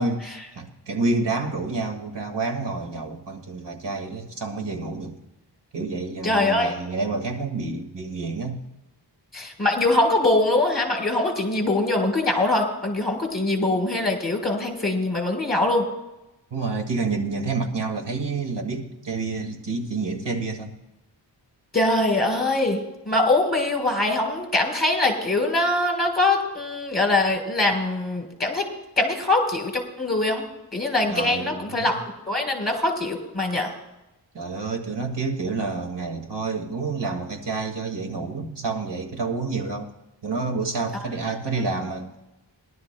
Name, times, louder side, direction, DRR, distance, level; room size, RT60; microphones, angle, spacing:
voice 1, 0.0-5.2 5.7-8.6 16.5-20.7 31.1-31.9 34.3-39.9 40.2-42.1, right 3 dB, 70° right, 3 dB, 2.0 m, -28 dB
voice 2, 6.2-6.7 9.3-15.9 21.7-22.8 23.1-28.7 29.0-30.4 30.7-32.0 32.3-33.7 41.8-41.9, left 2 dB, 20° left, 3 dB, 3.9 m, -23 dB
22.0 x 12.0 x 2.2 m, 0.96 s
wide cardioid pair, 55°, 43 cm